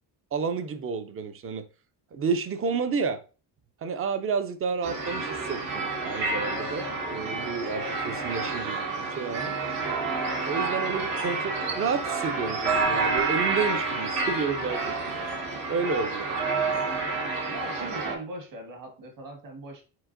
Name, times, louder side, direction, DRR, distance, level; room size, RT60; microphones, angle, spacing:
voice 1, 0.3-1.7 2.1-3.2 3.8-9.6 10.4-15.4 15.7-16.8, right 5 dB, 30° right, 0.4 m, -31 dB
sound 1, 4.8-18.2, right 3 dB, 70° right, 1.4 m, -29 dB
voice 2, 17.5-19.8, right 1 dB, 50° right, 1.4 m, -40 dB
4.5 x 4.3 x 2.5 m
cardioid pair, 160°, 43 cm